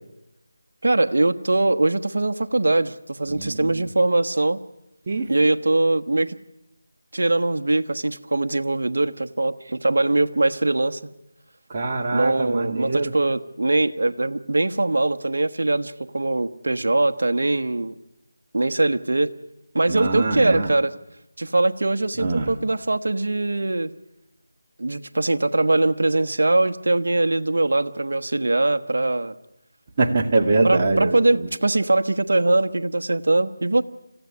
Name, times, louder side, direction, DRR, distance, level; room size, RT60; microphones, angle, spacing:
voice 1, 0.8-4.6 5.3-6.3 7.1-11.1 12.1-17.9 18.5-19.3 19.7-20.9 21.4-23.9 24.8-29.3 30.6-33.8, right 2 dB, 70° right, 7 dB, 1.2 m, -22 dB
voice 2, 3.3-3.8 5.1-5.3 11.7-13.1 19.9-20.7 22.2-22.5 30.0-31.5, right 3 dB, 30° right, 1 dB, 2.2 m, -23 dB
26.0 x 15.5 x 9.9 m, 0.94 s
figure-of-eight pair, 165°, 0 cm